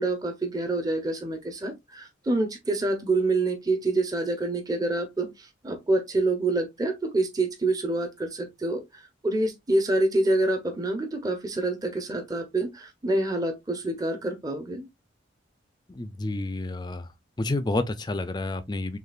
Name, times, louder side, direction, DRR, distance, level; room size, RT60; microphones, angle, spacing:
voice 1, 0.0-14.9, right 2 dB, 20° right, 0.8 m, -27 dB
voice 2, 15.9-17.1 17.4-19.0, left 2 dB, 20° left, 0.5 m, -29 dB
6.5 x 2.4 x 2.4 m
head